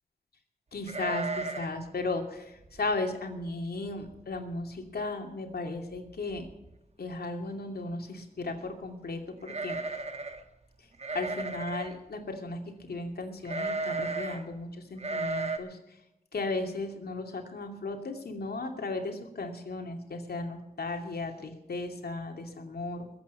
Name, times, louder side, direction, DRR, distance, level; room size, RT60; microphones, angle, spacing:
voice 1, 0.7-6.5 7.0-9.8 11.1-16.0 16.3-23.1, left 2 dB, 80° left, 4 dB, 2.6 m, -35 dB
sound 1, 0.9-1.8 2.1-2.2 2.6-2.9 3.5-3.6 3.9-4.4 4.7-4.8 5.9-6.0 6.3-6.8 9.4-10.4 11.0-12.0 13.4-14.4 15.0-15.6, right 3 dB, 40° right, 1.6 m, -34 dB
21.5 x 8.4 x 5.6 m, 0.92 s
wide cardioid pair, 85°, 16 cm